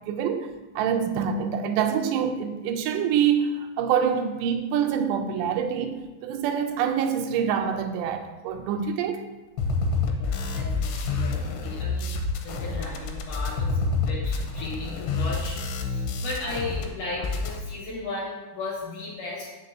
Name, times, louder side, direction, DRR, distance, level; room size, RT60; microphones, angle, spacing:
voice 1, 0.1-0.5 0.8-9.2, right 7 dB, 85° right, 2.7 m, -26 dB
sound 1, 9.6-16.9 17.1-17.6, left 4 dB, 85° left, 2.7 m, -28 dB
voice 2, 10.1-12.1 12.4-19.5, left 2 dB, 60° left, 2.3 m, -36 dB
7.4 x 6.5 x 2.6 m
omnidirectional pair, 4.9 m